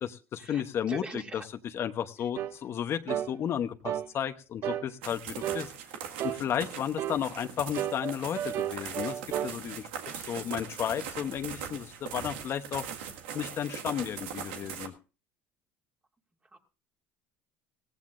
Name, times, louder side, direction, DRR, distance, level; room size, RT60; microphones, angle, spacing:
voice 1, 0.0-5.7 6.2-9.9 10.1-12.8 13.3-14.9, left 9 dB, 50° left, 8 dB, 0.9 m, -33 dB
voice 2, 0.9-1.5 16.5-16.6, right 3 dB, 20° right, 2 dB, 2.5 m, -40 dB
sound 1, 2.4-2.5 3.1-3.3 3.8-4.1 4.6-4.9 5.4-5.7 6.2-6.4 7.0-7.2 7.7-9.5, right 11 dB, 55° right, 0.7 m, -32 dB
sound 2, 5.0-14.9, right 8 dB, 90° right, 1.8 m, -41 dB
17.5 x 15.0 x 2.5 m, 0.33 s
supercardioid pair, 95°, 6 cm